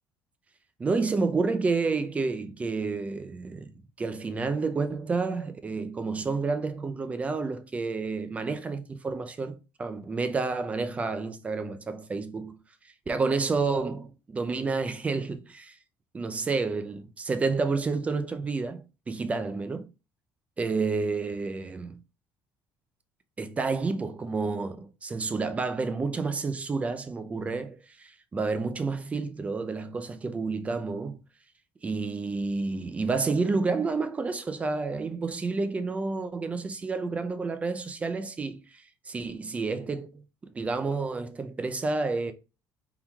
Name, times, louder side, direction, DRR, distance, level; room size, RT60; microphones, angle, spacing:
voice 1, 0.8-12.6 13.1-15.8 16.1-19.8 20.6-22.0 23.4-31.2 31.8-40.2 40.5-42.3, right 4 dB, 20° right, 0.5 m, -30 dB
4.3 x 3.7 x 2.3 m
cardioid pair, 150°, 8 cm